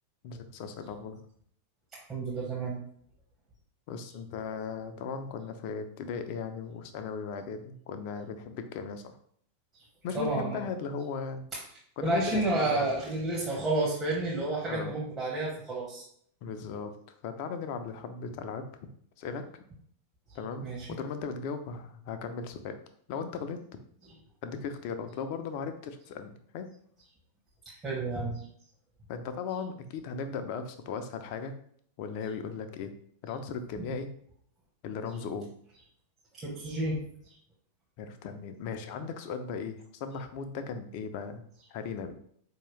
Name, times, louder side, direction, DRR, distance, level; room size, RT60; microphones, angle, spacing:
voice 1, 0.2-1.2 3.9-9.1 10.0-11.4 12.0-13.0 14.7-14.9 16.4-16.9 17.2-18.7 19.2-19.4 20.3-22.8 23.1-23.6 24.4-26.7 29.1-31.5 32.0-32.9 33.2-34.1 34.8-35.5 38.0-41.4 41.7-42.1, left 5 dB, 45° left, 8 dB, 0.5 m, -37 dB
voice 2, 1.9-2.8 10.1-10.7 11.5-11.6 12.0-16.0 20.6-20.9 27.8-28.4 33.8-33.9 36.4-37.0, right 2 dB, 25° right, -5 dB, 1.1 m, -30 dB
4.5 x 2.8 x 3.1 m, 0.63 s
figure-of-eight pair, 90°, 0 cm